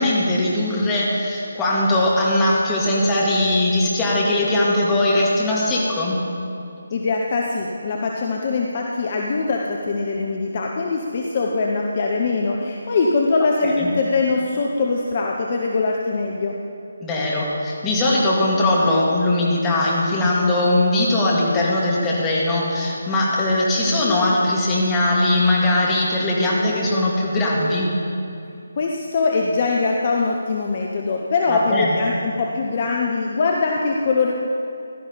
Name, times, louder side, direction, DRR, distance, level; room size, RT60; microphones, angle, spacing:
voice 1, 0.0-6.2 13.6-13.9 17.0-27.9 31.5-32.0, left 1 dB, 10° left, -5 dB, 2.1 m, -20 dB
voice 2, 6.9-16.6 28.8-34.3, left 3 dB, 35° left, 0 dB, 1.0 m, -22 dB
15.5 x 12.0 x 4.1 m, 2.6 s
figure-of-eight pair, 150°, 0 cm